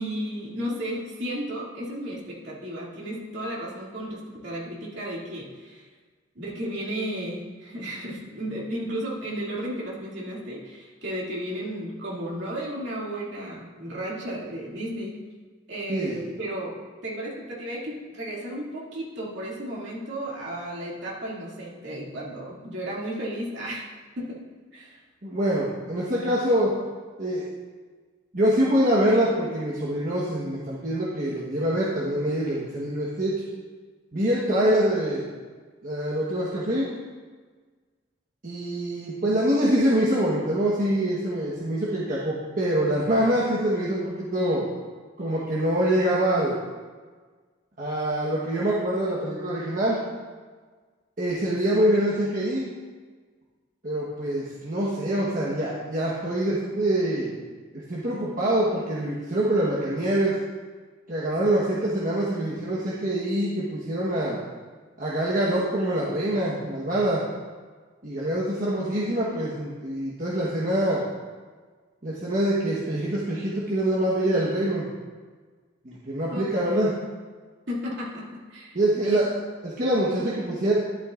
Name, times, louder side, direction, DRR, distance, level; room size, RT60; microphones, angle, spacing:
voice 1, 0.0-5.9 6.3-15.2 15.7-23.9 24.2-24.5 24.7-25.0 76.3-76.9 77.7-79.3, right 1 dB, 60° right, -5 dB, 2.5 m, -34 dB
voice 2, 15.9-16.2 25.2-26.8 27.2-27.4 28.3-33.4 34.1-35.3 35.8-36.9 38.4-44.7 45.2-46.6 47.8-50.0 51.2-52.7 53.8-57.4 57.9-60.4 61.1-64.4 65.0-67.2 68.0-71.0 72.0-74.9 75.8-76.9 78.7-79.3 79.6-80.7, right 1 dB, 45° right, -7 dB, 1.2 m, -25 dB
12.0 x 11.0 x 2.5 m, 1.5 s
head